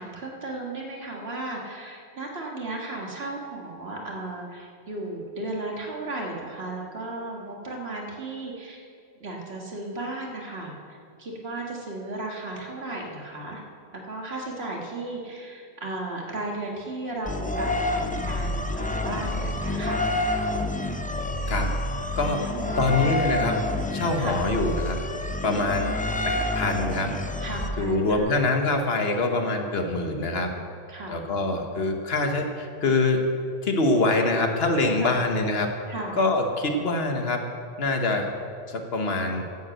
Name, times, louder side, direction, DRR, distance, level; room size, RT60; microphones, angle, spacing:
voice 1, 0.0-8.8 9.2-13.6 14.1-20.0 22.5-23.0 24.2-24.4 27.4-28.4 30.2-31.6 35.0-35.1 35.9-36.2, right 2 dB, 65° right, -1 dB, 2.0 m, -35 dB
sound 1, 17.3-28.2, left 1 dB, 15° left, 0.3 m, -28 dB
voice 2, 22.8-23.6 23.9-25.0 25.4-25.9 26.2-27.1 27.8-30.5 31.1-33.2 33.6-35.7 36.2-37.4 37.8-38.3 38.7-39.4, left 2 dB, 65° left, 4 dB, 1.3 m, -24 dB
10.5 x 7.2 x 7.9 m, 2.3 s
omnidirectional pair, 1.1 m